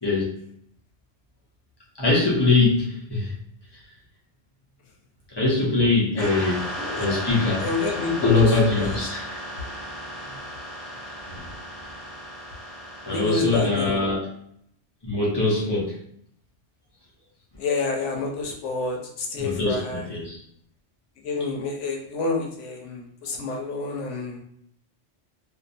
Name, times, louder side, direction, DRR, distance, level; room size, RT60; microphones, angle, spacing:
voice 1, 0.0-0.3 2.0-3.3 5.3-6.6 7.0-7.7 8.2-9.2 11.3-11.5 13.0-14.3 15.0-16.0 19.4-20.4, left 3 dB, 30° left, -5 dB, 0.6 m, -22 dB
sound 1, 6.2-13.7, equal, 45° right, 0.5 m, -35 dB
voice 2, 6.8-7.3 7.6-9.0 9.6-9.7 13.1-14.1 17.6-20.0 21.2-24.4, left 3 dB, 90° left, 2 dB, 1.0 m, -28 dB
2.6 x 2.2 x 2.5 m, 0.68 s
omnidirectional pair, 1.2 m